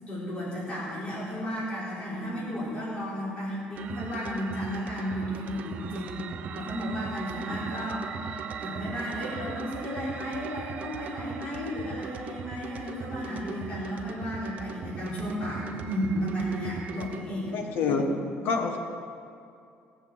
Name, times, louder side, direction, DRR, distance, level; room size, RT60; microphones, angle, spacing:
voice 1, 0.0-18.1, equal, 30° left, -8 dB, 4.3 m, -33 dB
sound 1, 3.7-17.2, right 7 dB, 40° right, 0.7 m, -39 dB
voice 2, 17.5-18.1 18.4-18.8, left 5 dB, 65° left, 4 dB, 1.5 m, -27 dB
18.0 x 7.3 x 7.9 m, 2.5 s
cardioid pair, 165°, 4 cm